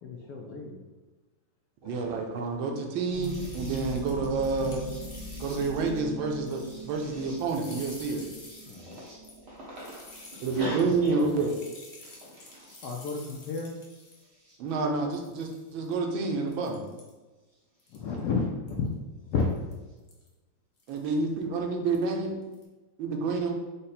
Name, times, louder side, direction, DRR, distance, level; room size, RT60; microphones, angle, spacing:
voice 1, 0.0-0.8 8.7-9.0 12.8-13.7 17.9-19.5, left 4 dB, 75° left, 1 dB, 1.0 m, -32 dB
voice 2, 1.8-4.8 5.4-8.2 10.4-11.5 14.6-16.8 20.9-22.4 23.0-23.5, right 3 dB, 85° right, 3 dB, 1.4 m, -29 dB
sound 1, 3.1-11.2 12.0-12.7 13.9-14.5 16.3-16.4 18.1-18.2, equal, 40° right, 0.7 m, -42 dB
sound 2, 3.2-6.0 6.3-7.1 7.4-14.2 14.7-14.8 15.1-15.9 16.5-17.1 17.8-18.2 18.7-18.9 19.4-19.7 20.1-20.3 20.8-21.2 21.8-22.1 22.4-22.6, left 2 dB, 50° left, 0.5 m, -50 dB
voice 3, 9.5-11.1 12.3-12.7, right 1 dB, 60° right, -5 dB, 1.8 m, -37 dB
5.1 x 2.1 x 4.1 m, 1.2 s
omnidirectional pair, 2.1 m